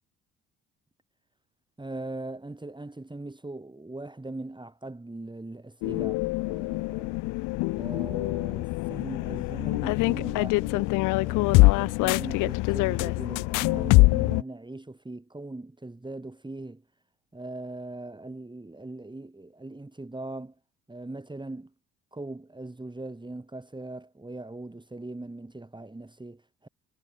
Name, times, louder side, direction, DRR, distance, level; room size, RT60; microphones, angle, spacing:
voice 1, 1.8-7.3 7.7-16.8 17.3-20.5 20.9-21.7 22.1-26.7, right 2 dB, 10° right, 3.3 m, -40 dB
sound 1, 5.8-14.4, left 24 dB, 60° left, 0.5 m, -24 dB
hypercardioid pair, 50°, 37 cm